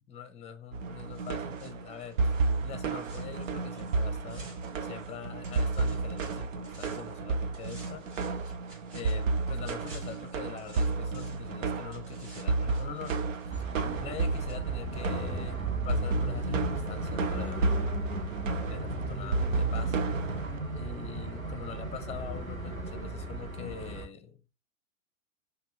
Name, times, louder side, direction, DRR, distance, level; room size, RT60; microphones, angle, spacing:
voice 1, 0.1-2.3 2.6-4.5 4.8-8.4 8.9-13.2 13.5-13.6 14.0-17.7 18.4-20.2 20.7-24.4, left 7 dB, 15° left, 0.9 m, -44 dB
sound 1, 0.7-20.6, right 3 dB, 70° right, 0.8 m, -32 dB
sound 2, 1.1-5.2 5.4-7.2 7.5-11.5 11.9-14.2 14.5-14.6, right 2 dB, 30° right, 2.6 m, -54 dB
sound 3, 13.5-24.1, right 1 dB, 90° right, 1.7 m, -36 dB
5.9 x 3.3 x 5.5 m
figure-of-eight pair, 110°, 40 cm